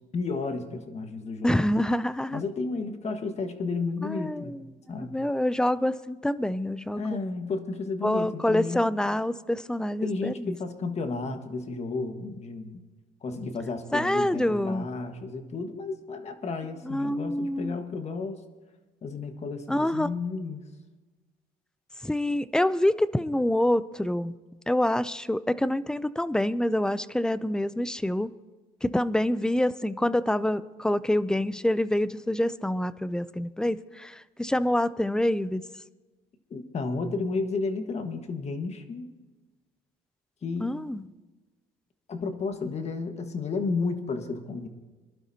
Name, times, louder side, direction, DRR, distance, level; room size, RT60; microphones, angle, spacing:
voice 1, 0.1-1.6 2.3-4.5 4.9-5.2 6.9-8.9 10.0-12.8 13.2-18.4 19.0-20.6 36.5-39.1 40.4-40.8 42.1-44.7, left 4 dB, 40° left, 7 dB, 1.5 m, -32 dB
voice 2, 1.4-2.4 4.0-4.6 5.0-7.2 8.0-10.6 13.9-14.9 16.8-17.8 19.7-20.1 22.0-24.3 24.7-28.3 28.8-35.7 40.6-41.0, left 1 dB, 5° left, 16 dB, 0.4 m, -26 dB
23.5 x 12.0 x 2.8 m, 1.3 s
cardioid pair, 110°, 17 cm